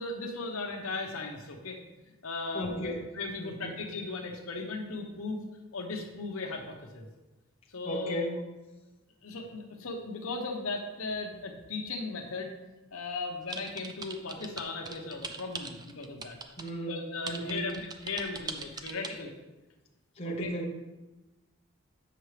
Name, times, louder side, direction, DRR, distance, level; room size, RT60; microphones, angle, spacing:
voice 1, 0.0-1.8 2.2-7.1 7.7-8.3 9.2-12.5 12.9-16.4 16.9-19.3 20.2-20.5, left 3 dB, 70° left, 3 dB, 0.9 m, -37 dB
voice 2, 2.5-3.0 3.4-3.8 7.8-8.5 16.6-17.7 20.2-20.8, right 1 dB, 25° left, -3 dB, 0.8 m, -35 dB
sound 1, 13.5-16.7 17.3-19.1, right 4 dB, 20° right, 0.3 m, -40 dB
7.8 x 5.8 x 3.3 m, 1.1 s
head